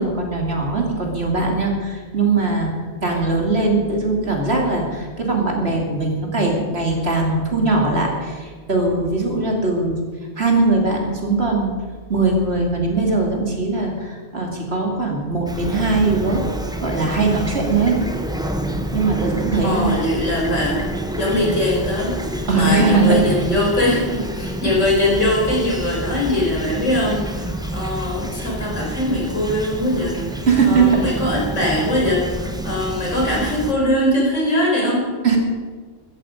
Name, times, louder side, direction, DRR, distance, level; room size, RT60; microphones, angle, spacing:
voice 1, 0.0-10.0 10.4-11.8 12.1-16.4 16.8-18.0 18.9-20.0 22.5-23.2 30.5-31.0 35.2-35.4, right 3 dB, 55° right, 0 dB, 2.9 m, -20 dB
Fowl / Chirp tweet, 15.5-33.7, right 1 dB, 5° right, 0.9 m, -28 dB
voice 2, 19.6-35.1, left 1 dB, 75° left, -3 dB, 5.1 m, -21 dB
15.0 x 14.0 x 5.2 m, 1.5 s
omnidirectional pair, 1.3 m